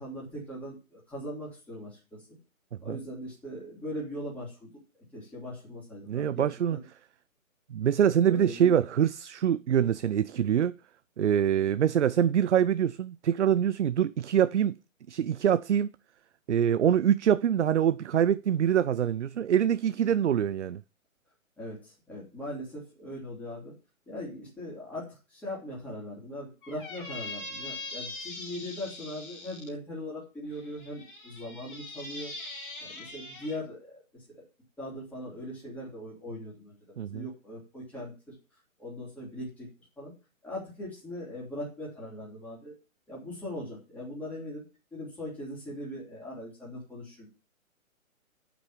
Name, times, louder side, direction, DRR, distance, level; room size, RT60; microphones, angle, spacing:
voice 1, 0.0-2.2 2.8-4.7 5.1-6.8 8.2-8.8 21.6-23.7 24.1-32.3 32.8-34.4 34.8-38.3 38.8-39.7 40.0-40.1 40.4-42.7 43.1-44.6 44.9-47.3, left 1 dB, 5° left, 3.2 m, -40 dB
voice 2, 6.1-6.8 7.7-10.7 11.2-14.8 15.1-15.9 16.5-20.8 37.0-37.3, right 9 dB, 55° right, 0.5 m, -25 dB
Squeak, 26.6-29.7 30.5-33.6, left 2 dB, 40° left, 2.8 m, -42 dB
8.2 x 6.1 x 7.4 m
hypercardioid pair, 165°, 41 cm